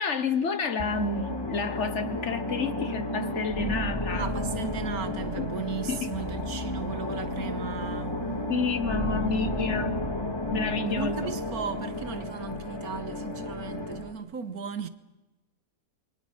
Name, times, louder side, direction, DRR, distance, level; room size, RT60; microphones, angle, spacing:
voice 1, 0.0-4.3 5.4-5.5 5.9-6.1 8.5-10.0 10.5-11.2, left 4 dB, 50° left, 1.5 m, -29 dB
sound 1, 0.8-14.1, left 1 dB, 15° left, 2.9 m, -32 dB
voice 2, 4.1-8.2 9.0-9.4 10.9-14.9, right 6 dB, 75° right, 1.7 m, -36 dB
27.5 x 24.0 x 6.0 m
omnidirectional pair, 1.6 m